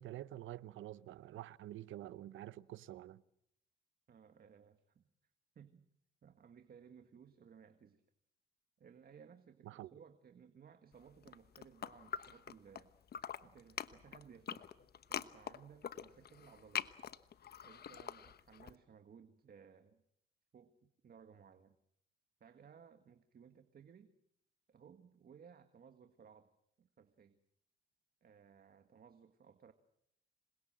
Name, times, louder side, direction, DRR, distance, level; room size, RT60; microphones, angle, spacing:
voice 1, 0.0-3.2 9.7-9.9, right 14 dB, 80° right, 0.9 m, -48 dB
voice 2, 4.1-5.1 5.6-5.9 6.2-8.0 8.8-12.9 13.4-14.7 15.1-16.9 17.6-20.0 20.5-21.8 22.4-24.1 24.7-27.4 28.2-29.7, right 7 dB, 50° right, 1.7 m, -60 dB
sound 1, 11.2-12.8 13.1-18.7, left 8 dB, 55° left, 1.1 m, -44 dB
27.0 x 21.5 x 7.6 m
cardioid pair, 90°, 20 cm